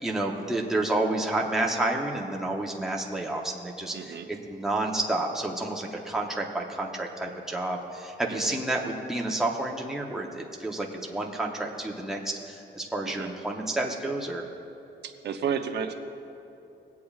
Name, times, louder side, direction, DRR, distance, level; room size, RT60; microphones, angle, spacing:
voice 1, 0.0-14.4, right 2 dB, ahead, -1 dB, 0.8 m, -30 dB
voice 2, 3.9-4.3 8.3-8.6 13.1-13.3 15.0-15.9, right 7 dB, 65° right, 5 dB, 0.7 m, -32 dB
23.5 x 8.4 x 2.4 m, 2.9 s
wide cardioid pair, 165°, 19 cm